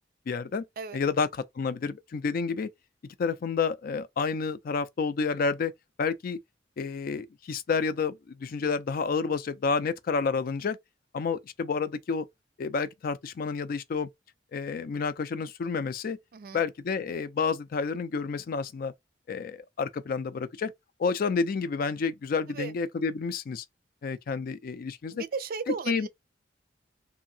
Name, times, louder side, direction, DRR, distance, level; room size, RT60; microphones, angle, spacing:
voice 1, 0.3-0.6 0.9-2.7 3.2-5.7 6.0-6.4 6.8-10.8 11.1-12.3 12.6-14.1 14.5-16.2 16.5-18.9 19.3-20.7 21.0-23.6 24.0-25.2 25.9-26.1, left 5 dB, 50° left, 0.4 m, -29 dB
voice 2, 16.3-16.6 22.5-22.7 25.1-26.1, right 5 dB, 55° right, 0.4 m, -35 dB
2.7 x 2.6 x 2.7 m
head